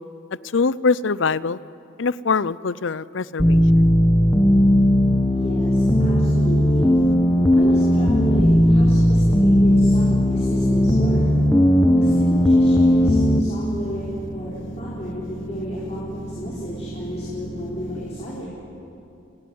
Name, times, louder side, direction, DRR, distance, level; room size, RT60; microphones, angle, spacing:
voice 1, 0.5-1.6 2.0-3.6, left 4 dB, 70° left, 19 dB, 0.6 m, -23 dB
sound 1, 3.4-13.4, equal, 15° left, 1.1 m, -17 dB
voice 2, 5.3-6.9 7.5-11.3 11.9-18.5, equal, 35° left, -6 dB, 4.6 m, -33 dB
sound 2, 6.3-18.0, right 1 dB, 50° left, 7.8 m, -35 dB
29.5 x 18.5 x 9.5 m, 2.6 s
head